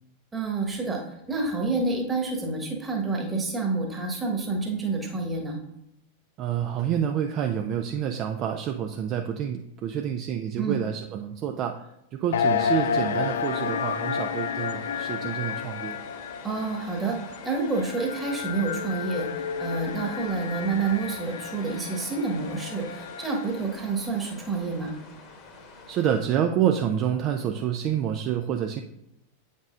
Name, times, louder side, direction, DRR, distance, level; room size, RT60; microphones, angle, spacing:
voice 1, 0.3-5.6 10.6-10.8 16.4-24.9, right 3 dB, 15° right, 0 dB, 1.3 m, -28 dB
voice 2, 6.4-16.0 25.9-28.8, right 9 dB, 35° right, 5 dB, 0.4 m, -28 dB
sound 1, 12.3-23.7, left 6 dB, 60° left, 0.3 m, -31 dB
sound 2, 12.6-26.2, left 3 dB, 35° left, 1.0 m, -46 dB
8.1 x 5.3 x 2.5 m, 0.81 s
figure-of-eight pair, 90°, 0 cm